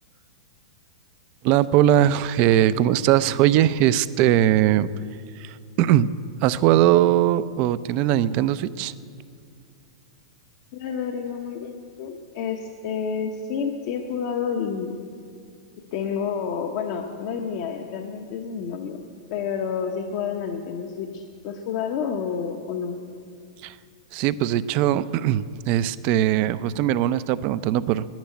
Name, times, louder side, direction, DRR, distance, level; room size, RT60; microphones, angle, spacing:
voice 1, 1.4-4.9 5.4-6.1 6.4-8.9 23.6-23.8 24.1-28.1, right 12 dB, 45° right, 16 dB, 0.5 m, -20 dB
voice 2, 10.7-15.0 15.9-19.0 19.3-23.0, left 6 dB, 55° left, 3 dB, 1.0 m, -29 dB
10.5 x 10.5 x 9.2 m, 2.3 s
hypercardioid pair, 125°, 3 cm